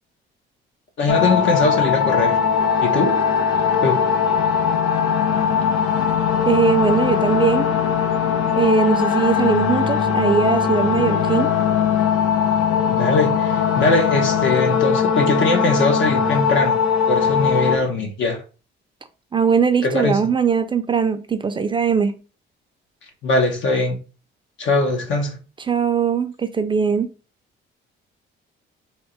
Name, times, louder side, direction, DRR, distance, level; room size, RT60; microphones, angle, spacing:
voice 1, 1.0-2.4 2.8-3.2 3.8-4.0 12.9-16.8 17.1-18.4 19.8-20.2 23.2-24.0 24.6-25.4, left 2 dB, 70° left, 1.2 m, -21 dB
sound 1, 1.1-17.8, left 7 dB, 90° left, 0.9 m, -20 dB
voice 2, 6.5-7.7 8.6-11.5 19.3-22.2 25.7-27.1, right 6 dB, 25° right, 0.5 m, -20 dB
3.6 x 2.9 x 4.6 m
cardioid pair, 120°, 20 cm